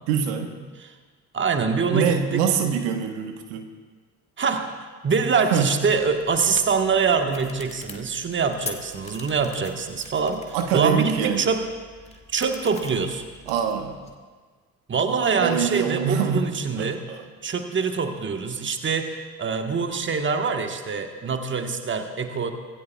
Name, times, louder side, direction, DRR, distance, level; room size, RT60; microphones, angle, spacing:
voice 1, 0.1-0.6 1.9-3.7 5.5-5.7 10.5-11.5 13.5-14.0 15.4-16.5 16.7-17.2, right 7 dB, 60° right, 5 dB, 1.4 m, -24 dB
voice 2, 1.3-2.4 4.4-10.4 10.7-11.7 12.3-13.2 14.9-17.1 17.4-22.5, right 5 dB, 25° right, 6 dB, 1.5 m, -24 dB
sound 1, 5.8-14.1, left 3 dB, 15° left, 2.2 m, -44 dB
25.5 x 18.0 x 2.4 m, 1.5 s
figure-of-eight pair, 50°, 44 cm